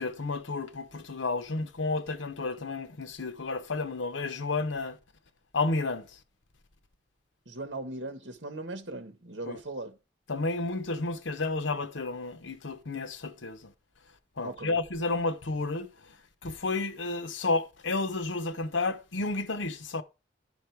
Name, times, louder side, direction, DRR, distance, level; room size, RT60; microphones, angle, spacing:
voice 1, 0.0-5.0 5.5-6.2 9.5-9.6 10.3-13.7 14.4-16.2 16.4-20.0, left 3 dB, 90° left, 0.9 m, -31 dB
voice 2, 7.5-9.9 14.4-14.8, right 2 dB, 70° right, 1.4 m, -38 dB
11.0 x 5.2 x 4.6 m
head